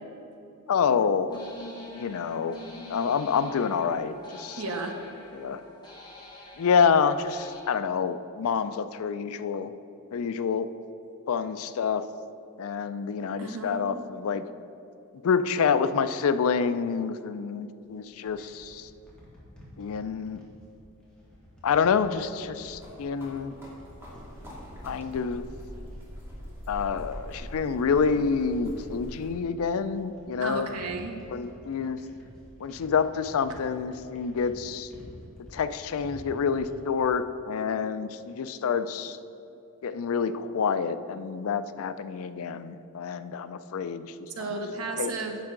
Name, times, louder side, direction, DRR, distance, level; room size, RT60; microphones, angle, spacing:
voice 1, 0.7-1.4 1.9-2.6 2.9-4.6 5.3-5.6 6.6-9.7 10.1-10.7 11.3-12.0 12.6-14.5 15.2-18.9 19.8-20.4 21.6-23.6 24.8-25.5 26.7-30.7 31.3-32.0 32.6-34.9 35.4-39.2 39.8-44.6 45.0-45.2, left 6 dB, 65° left, 12 dB, 0.4 m, -27 dB
sound 1, 1.3-7.6, left 1 dB, 20° left, 1.4 m, -45 dB
voice 2, 4.6-4.9 13.4-14.0 30.4-31.1 44.4-45.4, right 3 dB, 75° right, 3 dB, 1.0 m, -33 dB
sound 2, 17.8-36.9, equal, 5° left, 2.0 m, -51 dB
sound 3, 22.7-29.3, equal, 10° right, 2.1 m, -43 dB
10.5 x 7.3 x 3.8 m, 2.9 s
head